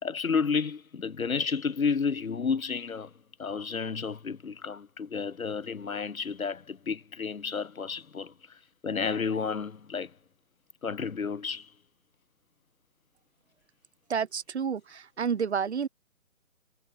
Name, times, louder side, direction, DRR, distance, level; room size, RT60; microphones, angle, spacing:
voice 1, 0.0-3.1 3.4-8.3 8.8-10.1 10.8-11.7, left 5 dB, 75° left, 2.9 m, -31 dB
voice 2, 14.1-15.9, right 6 dB, 50° right, 3.3 m, -30 dB
hypercardioid pair, 165°, 42 cm